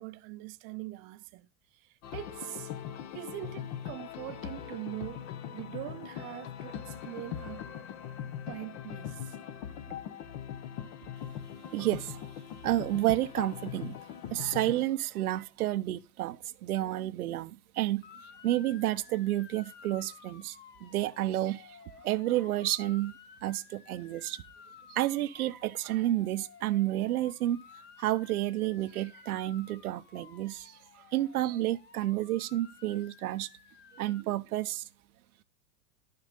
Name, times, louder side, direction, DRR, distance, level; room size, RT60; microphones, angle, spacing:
voice 1, 0.0-1.5 1.7-2.7 3.1-5.3 5.5-9.7, right 19 dB, 40° right, 0.7 m, -43 dB
Electronic base and pop guitar, 2.0-14.8, left 9 dB, 50° left, 1.1 m, -41 dB
voice 2, 11.7-12.3 12.6-14.0 14.3-18.0 18.4-20.6 20.8-21.8 22.0-23.1 23.4-24.4 24.9-27.6 28.0-30.8 31.1-33.5 34.0-34.8, right 15 dB, 85° right, 0.7 m, -30 dB
Motor vehicle (road) / Siren, 18.0-34.2, left 7 dB, 25° left, 0.8 m, -55 dB
11.5 x 6.7 x 3.6 m
supercardioid pair, 130°, 43 cm